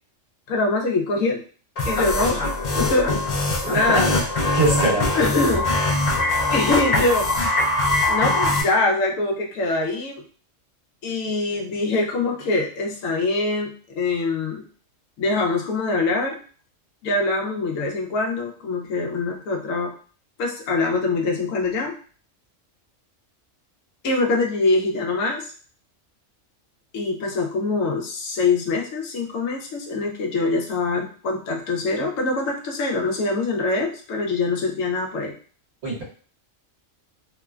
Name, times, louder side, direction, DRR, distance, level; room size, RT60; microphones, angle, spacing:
voice 1, 0.5-1.4 1.9-3.1 3.7-4.1 5.1-5.7 6.5-7.3 8.1-10.2 11.0-14.6 15.2-16.4 17.0-19.9 20.4-21.9 24.0-25.5 26.9-35.3, left 3 dB, 80° left, 1 dB, 1.0 m, -24 dB
sound 1, 1.8-8.6, left 2 dB, 60° left, 0.4 m, -22 dB
voice 2, 3.6-4.2 4.5-5.1 35.8-36.0, right 2 dB, 55° right, -6 dB, 1.4 m, -22 dB
3.0 x 2.1 x 2.3 m, 0.42 s
omnidirectional pair, 1.3 m